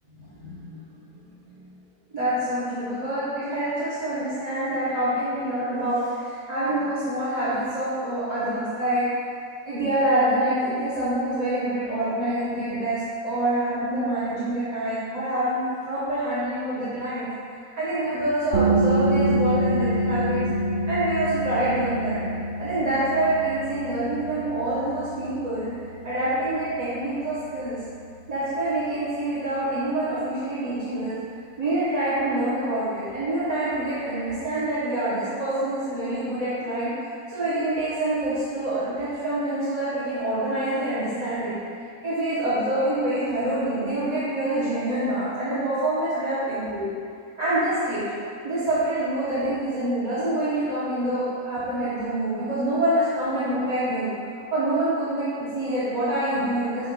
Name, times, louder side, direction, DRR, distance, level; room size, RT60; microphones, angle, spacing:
voice 1, 0.1-1.6 2.1-9.1 9.6-17.3 17.6-20.4 20.9-22.2 22.6-25.7 26.0-27.8 28.3-31.2 31.6-41.5 42.0-46.9 47.4-48.0 48.4-54.1 54.5-56.9, right 1 dB, 30° right, -13 dB, 1.0 m, -26 dB
sound 1, 18.5-29.9, right 1 dB, 70° right, 1.1 m, -27 dB
7.1 x 2.5 x 5.3 m, 2.2 s
omnidirectional pair, 1.7 m